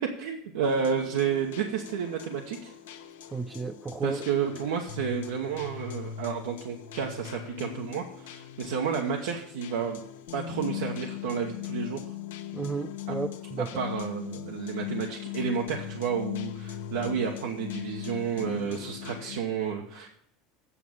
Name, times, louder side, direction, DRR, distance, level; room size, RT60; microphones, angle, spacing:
voice 1, 0.0-2.7 4.0-10.0 10.3-12.0 13.1-13.2 13.6-20.1, right 7 dB, 90° right, 1 dB, 1.0 m, -31 dB
sound 1, 0.6-19.4, left 12 dB, 90° left, 0.9 m, -40 dB
voice 2, 3.3-4.2 12.5-13.7, right 4 dB, 20° right, 5 dB, 0.6 m, -32 dB
8.5 x 6.2 x 7.1 m, 0.69 s
supercardioid pair, 110°, 0 cm